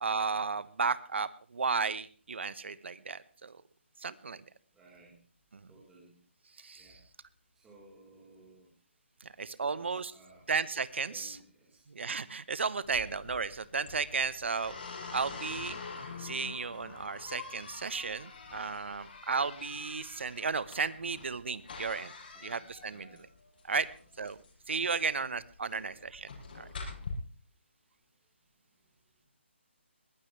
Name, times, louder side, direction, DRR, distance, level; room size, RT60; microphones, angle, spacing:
voice 1, 0.0-3.6 4.0-4.4 6.6-6.8 9.4-10.1 10.5-11.3 11.9-14.7 15.1-15.8 16.2-22.1 22.4-23.1 23.7-23.9 24.2-24.4 24.7-25.9 26.6-26.7, right 5 dB, 70° right, 16 dB, 1.2 m, -34 dB
voice 2, 4.7-5.2 5.7-6.1 6.8-7.0 7.6-8.7 9.6-10.5 11.1-11.8 18.3-19.0 22.3-23.2 23.8-24.0 25.7-26.0, right 2 dB, 5° right, -5 dB, 4.3 m, -58 dB
sound 1, 12.8-27.1, left 4 dB, 50° left, 5.9 m, -46 dB
22.0 x 18.0 x 3.4 m, 0.39 s
hypercardioid pair, 165°, 7 cm